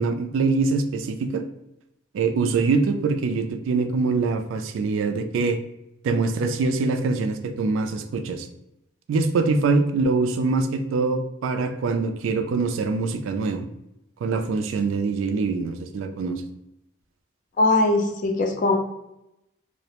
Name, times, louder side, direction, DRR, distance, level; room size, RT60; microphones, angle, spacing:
voice 1, 0.0-1.4 2.1-5.6 6.0-8.5 9.1-13.7 14.2-16.4, right 4 dB, 80° right, 7 dB, 0.3 m, -24 dB
voice 2, 17.6-18.7, left 2 dB, 40° left, 3 dB, 0.4 m, -20 dB
2.4 x 2.0 x 2.8 m, 0.86 s
head